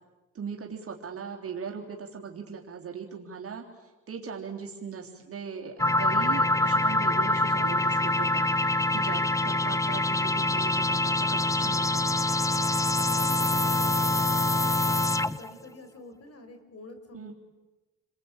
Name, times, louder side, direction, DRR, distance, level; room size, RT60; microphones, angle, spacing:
voice 1, 0.3-12.1 17.1-17.3, right 6 dB, 50° right, 0 dB, 3.5 m, -39 dB
sound 1, 5.8-15.5, left 2 dB, 10° left, 0.8 m, -25 dB
voice 2, 13.0-14.7 15.1-17.3, left 2 dB, 50° left, 8 dB, 5.6 m, -48 dB
29.0 x 22.0 x 9.0 m, 1.2 s
cardioid pair, 90°, 30 cm